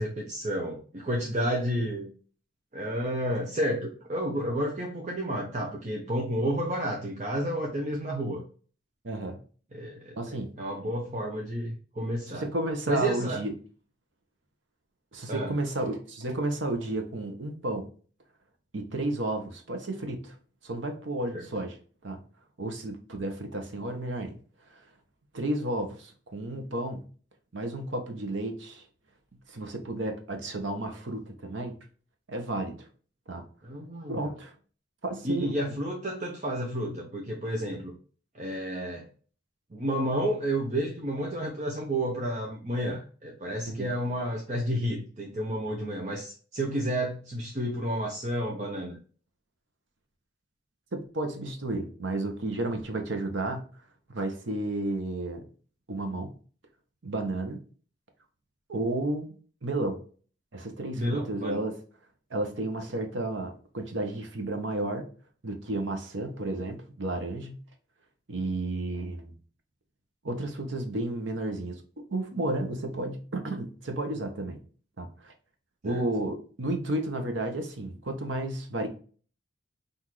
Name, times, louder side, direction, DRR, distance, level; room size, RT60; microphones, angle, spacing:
voice 1, 0.0-2.1 2.7-8.4 9.7-10.2 10.6-12.4 12.9-13.4 15.3-15.5 21.3-21.4 33.6-34.3 35.2-38.0 38.3-39.1 39.7-49.0 61.0-61.6 75.8-76.0, equal, 40° right, -1 dB, 0.7 m, -31 dB
voice 2, 9.0-9.4 10.2-10.5 12.3-13.5 15.1-17.9 18.7-20.4 20.6-21.8 22.0-22.2 22.6-24.3 25.3-27.0 27.5-28.8 29.5-31.7 32.3-32.9 33.3-33.4 34.1-34.5 35.0-35.6 43.7-43.9 50.9-53.6 54.1-55.4 55.9-56.3 57.0-57.6 58.7-59.3 59.6-60.0 60.5-61.8 62.3-65.1 65.4-67.6 68.3-69.3 70.2-71.8 72.1-74.6 75.0-75.3 75.8-78.9, right 2 dB, 80° right, 5 dB, 0.9 m, -32 dB
5.7 x 2.6 x 3.1 m, 0.40 s
head